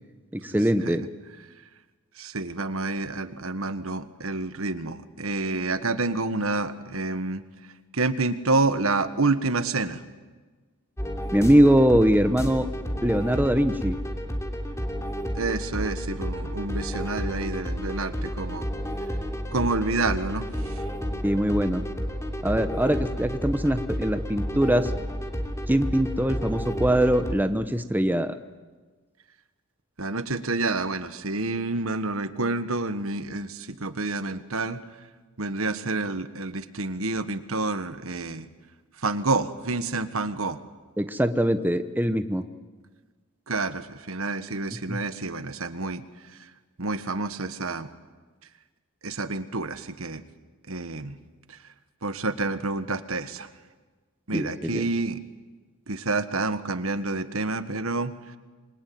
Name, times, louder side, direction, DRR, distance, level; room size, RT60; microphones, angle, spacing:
voice 1, 0.3-1.0 11.3-12.7 13.0-14.0 21.2-21.8 22.4-24.9 25.7-28.3 41.0-42.4 44.9-45.0 54.3-54.8, right 1 dB, 10° right, 8 dB, 1.0 m, -22 dB
voice 2, 2.2-7.4 7.9-10.0 15.3-18.7 19.5-20.8 30.0-34.8 35.4-38.5 39.0-40.6 43.5-46.0 46.4-46.5 46.8-47.9 49.0-50.2 50.7-51.1 51.5-51.6 52.0-53.5 54.3-55.2 55.9-58.1, right 3 dB, 70° right, 11 dB, 1.5 m, -28 dB
sound 1, 11.0-27.4, equal, 15° left, 3.1 m, -31 dB
27.0 x 23.5 x 9.4 m, 1.3 s
head